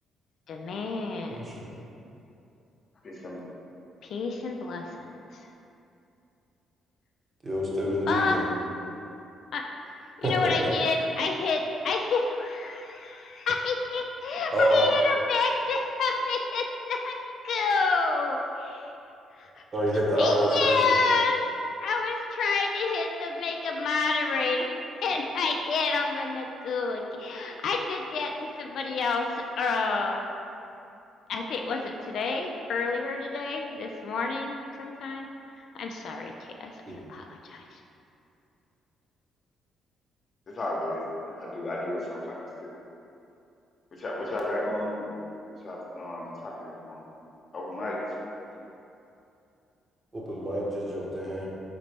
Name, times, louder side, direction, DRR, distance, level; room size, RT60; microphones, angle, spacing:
voice 1, 0.5-1.4 4.0-5.5 8.1-8.4 9.5-17.2 17.4-18.9 19.3-21.5 21.8-24.7 25.0-30.2 31.3-37.8, left 4 dB, 70° left, 2 dB, 0.3 m, -29 dB
voice 2, 1.3-1.7 7.4-8.4 10.2-10.3 10.6-10.7 14.5-14.9 19.7-20.7 36.9-37.1 50.1-51.5, equal, 30° right, -5 dB, 1.0 m, -26 dB
voice 3, 3.0-3.4 40.5-41.0 41.4-42.7 44.0-45.1 45.6-47.0 47.5-48.0, left 1 dB, 45° left, -3 dB, 0.9 m, -33 dB
4.1 x 3.9 x 3.3 m, 2.7 s
cardioid pair, 90°, 0 cm